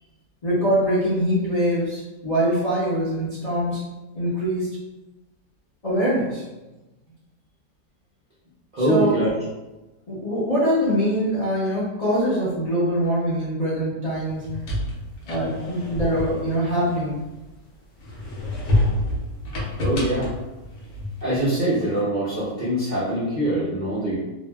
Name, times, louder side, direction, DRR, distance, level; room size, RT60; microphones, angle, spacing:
voice 1, 0.4-3.8 4.1-4.7 5.8-6.4 8.8-9.2 10.1-14.4 15.2-17.1, equal, 45° left, -11 dB, 0.5 m, -23 dB
voice 2, 8.7-9.3 19.8-20.3 21.2-24.2, right 1 dB, 75° right, -9 dB, 0.4 m, -23 dB
sound 1, 14.3-17.5 18.0-21.4, left 1 dB, 60° left, 1.0 m, -28 dB
2.8 x 2.5 x 2.2 m, 1.1 s
omnidirectional pair, 1.8 m